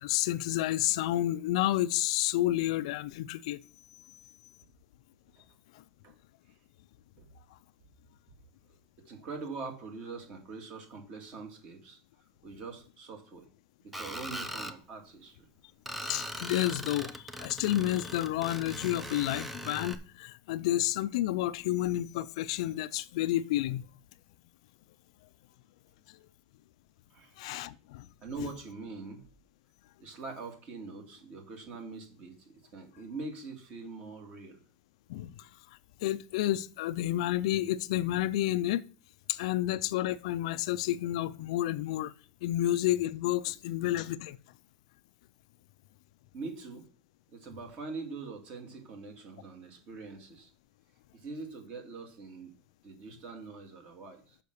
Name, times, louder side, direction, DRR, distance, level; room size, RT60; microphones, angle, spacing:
voice 1, 0.0-3.6 16.0-23.8 27.4-28.1 28.4-28.5 35.1-35.5 36.0-38.8 39.3-42.1 42.4-44.4, left 14 dB, 65° left, 0.4 m, -30 dB
voice 2, 9.1-12.0 12.4-13.4 13.8-15.3 27.1-27.4 28.2-29.2 30.0-34.6 46.3-46.8 47.3-50.5 51.1-52.5 52.8-54.4, right 4 dB, 35° right, 2.1 m, -43 dB
Screech, 13.9-14.8 15.9-19.9, equal, 5° right, 0.5 m, -40 dB
6.9 x 5.7 x 6.4 m
supercardioid pair, 165°, 4 cm